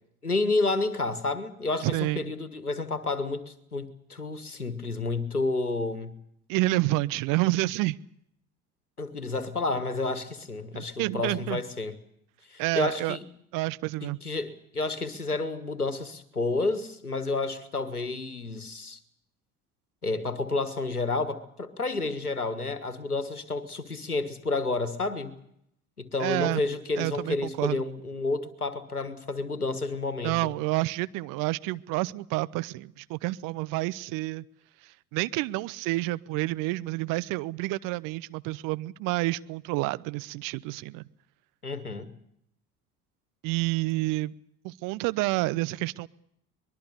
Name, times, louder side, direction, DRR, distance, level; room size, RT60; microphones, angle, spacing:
voice 1, 0.2-6.2 9.0-11.9 12.5-13.2 14.2-19.0 20.0-25.3 26.0-30.3 41.6-42.1, left 3 dB, 90° left, 13 dB, 1.6 m, -30 dB
voice 2, 1.8-2.3 6.5-8.0 11.0-11.6 12.6-13.2 13.5-14.2 26.2-26.6 27.0-27.8 30.2-34.4 35.1-41.0 43.4-44.3 44.6-46.1, right 20 dB, 45° right, 18 dB, 0.8 m, -29 dB
23.5 x 21.5 x 6.8 m, 0.73 s
figure-of-eight pair, 65°, 44 cm